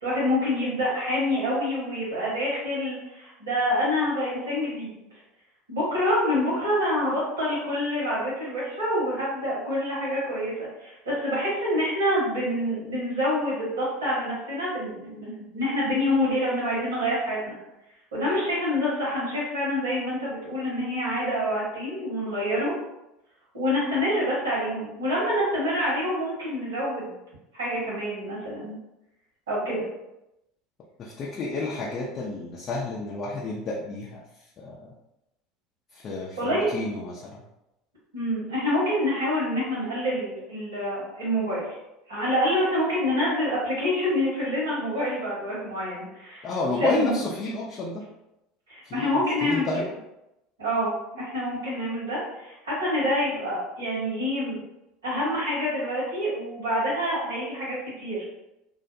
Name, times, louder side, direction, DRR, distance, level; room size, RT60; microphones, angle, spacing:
voice 1, 0.0-5.0 5.7-17.5 18.1-22.7 23.5-27.1 27.5-28.7 29.5-29.8 36.4-36.7 38.1-41.8 42.1-46.5 46.8-47.1 48.7-49.8 50.6-54.6 55.0-58.2, left 1 dB, 75° right, -7 dB, 1.2 m, -27 dB
voice 2, 31.0-34.2 34.6-34.9 35.9-37.4 46.4-48.0 48.8-49.8, left 3 dB, 40° left, -4 dB, 0.5 m, -31 dB
2.5 x 2.1 x 2.6 m, 0.90 s
figure-of-eight pair, 75°, 0 cm